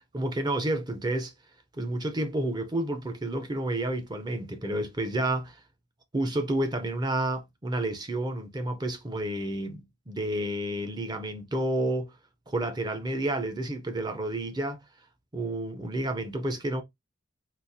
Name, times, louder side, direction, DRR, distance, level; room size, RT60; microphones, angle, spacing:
voice 1, 0.1-1.3 1.8-5.6 6.1-12.1 12.5-14.8 15.3-16.8, right 1 dB, 20° right, 0.5 m, -30 dB
3.9 x 2.3 x 2.5 m
head